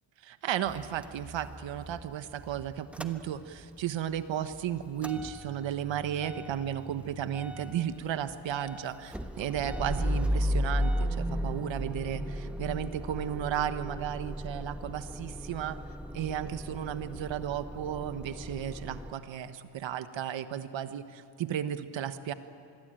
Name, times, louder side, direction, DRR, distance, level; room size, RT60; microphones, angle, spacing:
voice 1, 0.2-15.8 16.1-22.3, right 10 dB, 75° right, 11 dB, 1.4 m, -34 dB
Motor vehicle (road) / Engine starting / Idling, 0.7-3.8 4.1-19.1, equal, 5° right, 1.2 m, -36 dB
26.0 x 22.0 x 9.0 m, 2.4 s
cardioid pair, 130°, 46 cm